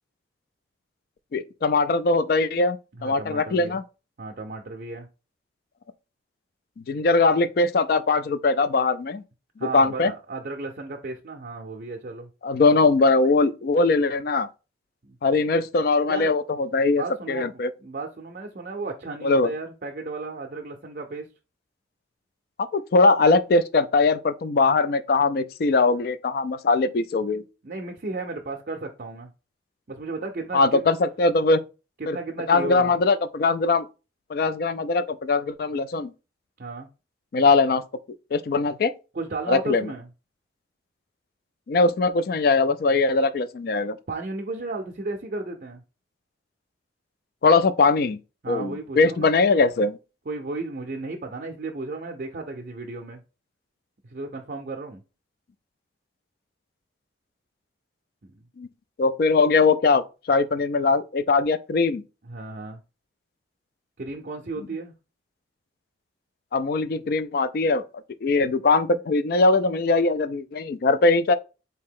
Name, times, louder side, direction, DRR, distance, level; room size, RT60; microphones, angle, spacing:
voice 1, 1.3-3.8 6.9-9.2 9.6-10.1 12.4-14.5 15.2-17.7 19.2-19.5 22.6-27.4 30.5-31.6 32.1-32.2 32.5-33.9 34.3-36.1 37.3-37.8 38.3-38.9 39.5-39.9 41.7-44.0 47.4-48.2 48.5-50.0 58.6-58.7 59.0-62.0 66.5-67.8 68.2-71.3, left 3 dB, 50° left, 0.3 m, -21 dB
voice 2, 2.9-3.8 4.2-5.1 9.6-12.3 15.0-15.2 16.1-16.4 17.0-21.3 27.6-29.3 29.9-31.0 32.0-32.9 36.6-36.9 39.1-40.1 44.1-45.8 48.4-49.4 50.3-53.2 54.0-55.0 58.2-58.5 62.2-62.8 64.0-64.9, right 3 dB, 45° right, 0.5 m, -34 dB
4.1 x 2.8 x 3.6 m
head